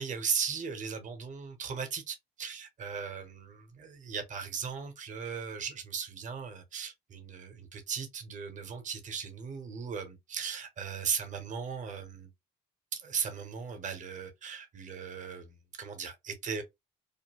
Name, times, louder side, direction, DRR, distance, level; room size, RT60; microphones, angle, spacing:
voice 1, 0.0-12.3 12.9-16.6, right 6 dB, 50° right, 0.9 m, -37 dB
2.5 x 2.2 x 2.9 m
cardioid pair, 110°, 17 cm